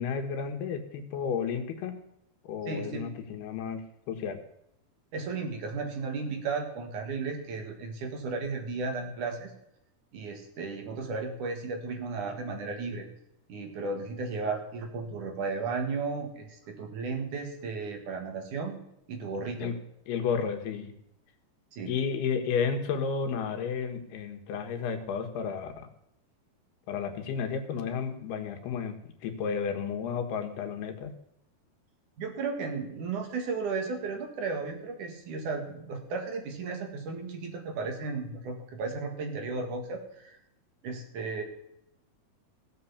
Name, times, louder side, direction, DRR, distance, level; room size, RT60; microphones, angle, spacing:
voice 1, 0.0-2.0 2.4-4.4 19.6-19.8 20.1-20.9 21.8-25.9 26.9-31.1, left 6 dB, 90° left, 6 dB, 3.5 m, -32 dB
voice 2, 2.6-3.1 5.1-9.5 10.1-13.1 13.5-19.7 21.7-22.0 32.2-40.4 40.8-41.4, right 4 dB, 60° right, 4 dB, 3.1 m, -34 dB
16.0 x 7.7 x 7.1 m, 0.80 s
omnidirectional pair, 4.4 m